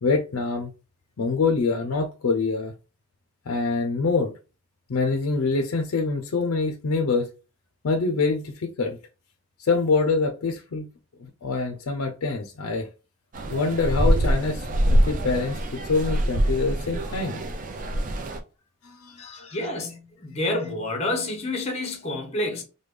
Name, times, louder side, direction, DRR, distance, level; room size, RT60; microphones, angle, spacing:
voice 1, 0.0-0.7 1.2-2.7 3.5-4.4 4.9-7.3 7.8-9.0 9.6-10.9 11.4-12.9 13.5-17.4 18.8-19.2, left 4 dB, 85° left, 0.5 m, -25 dB
sound 1, 13.3-18.4, equal, 35° right, 0.4 m, -24 dB
voice 2, 19.2-22.6, left 1 dB, 30° left, 0.8 m, -29 dB
3.3 x 2.2 x 3.1 m
head